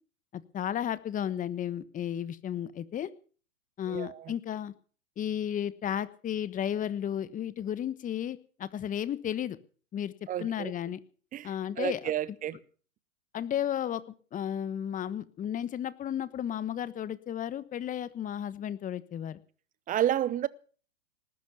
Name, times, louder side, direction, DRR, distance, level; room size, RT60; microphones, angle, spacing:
voice 1, 0.3-3.1 3.8-4.7 5.2-9.6 9.9-10.1 10.4-11.0 11.4-12.0 13.3-14.0 14.3-19.4, left 10 dB, 20° left, 1.2 m, -33 dB
voice 2, 3.9-4.3 10.3-10.7 11.3-11.5 11.8-12.6 19.9-20.5, right 11 dB, 20° right, 0.8 m, -30 dB
19.0 x 11.0 x 7.0 m
hypercardioid pair, 115°, 39 cm